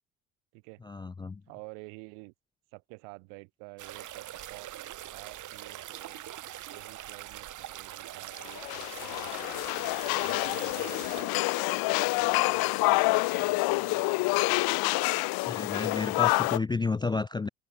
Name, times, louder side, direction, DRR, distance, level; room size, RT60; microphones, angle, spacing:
voice 1, 0.8-1.4 15.4-17.5, left 4 dB, 10° left, 0.3 m, -31 dB
voice 2, 1.5-2.3 2.7-4.8 5.1-6.2 6.7-9.7 10.2-14.4, right 40 dB or more, 85° right, 5.4 m, -50 dB
sound 1, 3.8-11.2, right 13 dB, 50° right, 0.9 m, -43 dB
sound 2, 8.5-16.6, left 23 dB, 70° left, 0.6 m, -27 dB
open air
hypercardioid pair, 65°, 39 cm